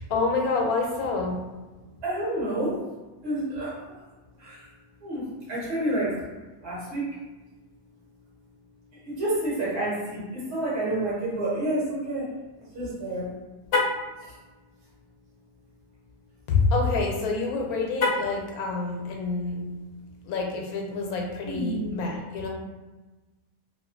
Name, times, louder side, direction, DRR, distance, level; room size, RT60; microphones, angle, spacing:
voice 1, 0.0-1.4 16.5-19.6 20.3-22.5, left 4 dB, 90° left, 1 dB, 1.1 m, -27 dB
voice 2, 2.0-2.8 3.2-4.0 4.4-4.7 5.0-6.2 6.6-7.0 8.9-12.3 12.7-13.3 14.2-14.3 21.5-22.0, right 1 dB, 55° right, -7 dB, 1.1 m, -29 dB
Car, 13.6-14.1 17.9-18.4, left 3 dB, 65° left, 0.8 m, -25 dB
2.8 x 2.3 x 2.5 m, 1.2 s
omnidirectional pair, 1.5 m